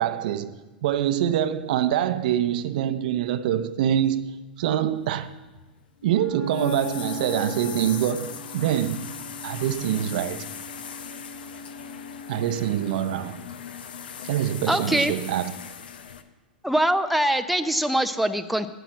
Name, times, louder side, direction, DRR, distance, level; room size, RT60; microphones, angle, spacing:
voice 1, 0.0-5.3 6.0-9.1 9.4-10.5 12.3-13.4 14.2-15.5, right 10 dB, 60° right, 0.7 m, -25 dB
sound 1, 5.0-16.2, left 7 dB, 75° left, 0.9 m, -39 dB
Wind instrument woodwind instrument, 6.0-12.7, left 4 dB, 50° left, 2.1 m, -40 dB
voice 2, 14.7-15.1 16.6-18.7, right 1 dB, ahead, 0.6 m, -23 dB
9.2 x 9.1 x 7.4 m
hypercardioid pair, 100°, 5 cm